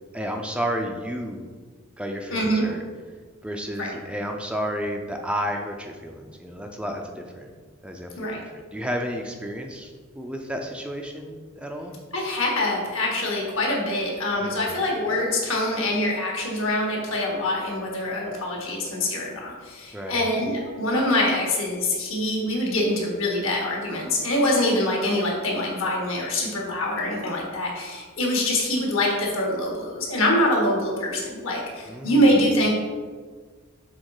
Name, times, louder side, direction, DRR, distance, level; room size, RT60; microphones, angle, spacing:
voice 1, 0.1-1.5 2.0-2.8 3.4-7.5 7.8-11.9 14.4-14.8 19.9-20.2 31.9-32.3, equal, 5° right, 2 dB, 0.4 m, -32 dB
voice 2, 2.3-2.6 3.8-3.9 8.2-8.4 12.1-32.7, left 1 dB, 70° left, -1 dB, 1.7 m, -24 dB
6.4 x 3.8 x 4.8 m, 1.5 s
head